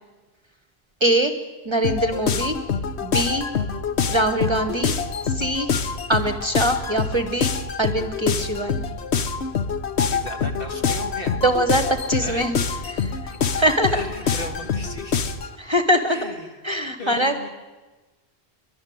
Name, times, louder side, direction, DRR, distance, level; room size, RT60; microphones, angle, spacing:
voice 1, 1.0-1.4 1.6-2.6 3.0-3.5 4.1-4.9 5.2-5.7 6.1-7.5 7.8-8.8 11.4-12.6 12.9-14.0 15.6-16.4 16.6-17.5, right 1 dB, 25° right, 8 dB, 1.0 m, -23 dB
sound 1, 1.8-15.5, left 6 dB, 80° left, 1.2 m, -26 dB
voice 2, 10.1-11.4 12.2-12.5 13.3-15.2 16.1-16.6 17.0-17.5, left 1 dB, 55° left, 4 dB, 2.0 m, -36 dB
23.5 x 12.0 x 9.3 m, 1.2 s
omnidirectional pair, 1.1 m